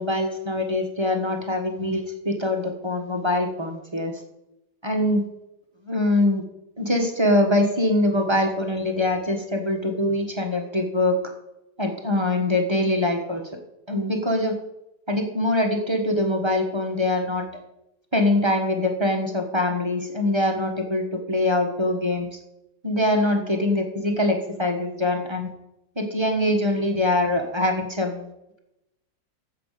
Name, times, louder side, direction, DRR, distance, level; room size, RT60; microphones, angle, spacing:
voice 1, 0.0-4.2 4.8-5.2 5.9-6.4 6.8-11.2 11.8-13.4 13.9-14.5 15.1-17.4 18.1-22.3 22.8-25.5 26.0-28.3, left 1 dB, 15° right, 3 dB, 1.1 m, -23 dB
9.1 x 7.5 x 6.7 m, 0.88 s
omnidirectional pair, 2.1 m